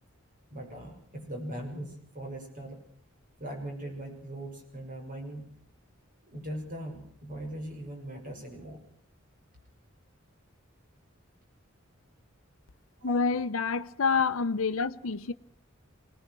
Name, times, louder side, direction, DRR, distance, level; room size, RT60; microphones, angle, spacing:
voice 1, 0.5-2.8 3.4-5.5 6.2-8.8 13.0-13.2, equal, 40° right, 6.4 m, -40 dB
voice 2, 13.0-15.3, left 4 dB, 75° left, 0.8 m, -28 dB
24.5 x 19.0 x 6.1 m
head